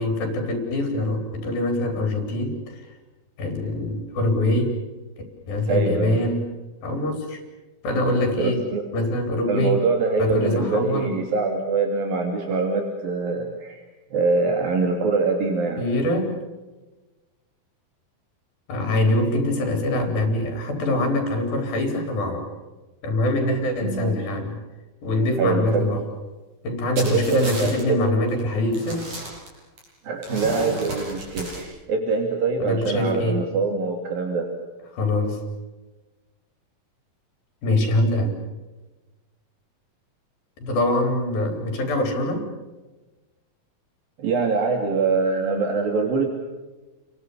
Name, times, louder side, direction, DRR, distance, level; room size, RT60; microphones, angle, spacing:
voice 1, 0.0-2.8 3.4-4.8 5.5-6.6 6.8-7.4 7.8-8.6 8.9-9.8 10.2-11.1 15.8-16.4 18.7-22.5 23.0-24.6 25.0-26.0 26.6-29.0 32.6-33.4 34.9-35.4 37.6-38.3 40.6-42.5, left 1 dB, 75° left, 5 dB, 5.8 m, -24 dB
voice 2, 5.7-6.2 8.4-8.9 9.5-13.8 14.1-15.8 23.8-24.1 25.4-26.0 27.0-28.0 30.0-34.5 44.2-46.3, right 4 dB, 75° right, 2 dB, 4.4 m, -24 dB
sound 1, 27.0-27.8 28.3-28.4 28.7-29.8 30.2-31.6, right 1 dB, 55° right, 9.6 m, -33 dB
30.0 x 23.5 x 7.0 m, 1.2 s
omnidirectional pair, 4.2 m